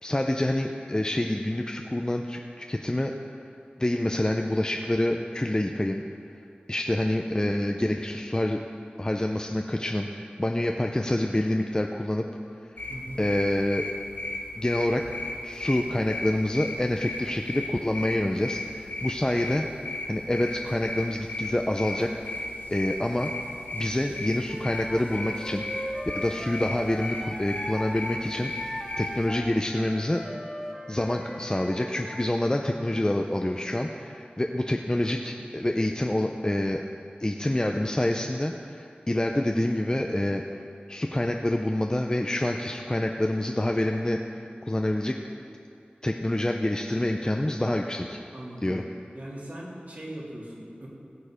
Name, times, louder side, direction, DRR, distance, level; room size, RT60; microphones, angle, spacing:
voice 1, 0.0-3.1 3.8-6.0 6.7-8.6 9.0-12.2 13.2-13.8 14.6-15.0 15.4-22.1 22.7-23.3 23.7-30.2 30.9-36.8 37.2-40.4 40.9-45.1 46.0-48.2 48.6-48.8, left 1 dB, 25° left, 3 dB, 0.6 m, -27 dB
sound 1, 12.8-29.3, left 2 dB, 65° left, 1.4 m, -36 dB
voice 2, 12.9-13.2 48.3-48.8 49.1-50.9, right 1 dB, 55° right, -6 dB, 3.2 m, -39 dB
Wind instrument woodwind instrument, 24.5-28.0 28.3-32.1, equal, 5° left, 1.7 m, -39 dB
16.5 x 7.0 x 5.0 m, 2.5 s
wide cardioid pair, 55°, 3 cm